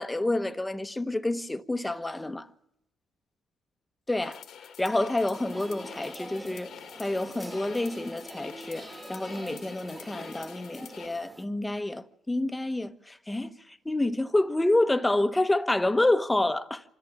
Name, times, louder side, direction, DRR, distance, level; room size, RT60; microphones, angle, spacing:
voice 1, 0.0-2.5 4.1-4.4 4.8-6.7 7.0-13.5 13.8-16.8, left 2 dB, 10° left, 1.1 m, -28 dB
sound 1, 4.2-11.1, left 9 dB, 75° left, 1.7 m, -47 dB
sound 2, 5.3-11.5, right 1 dB, 15° right, 1.9 m, -45 dB
26.0 x 14.0 x 7.2 m
cardioid pair, 90°, 0 cm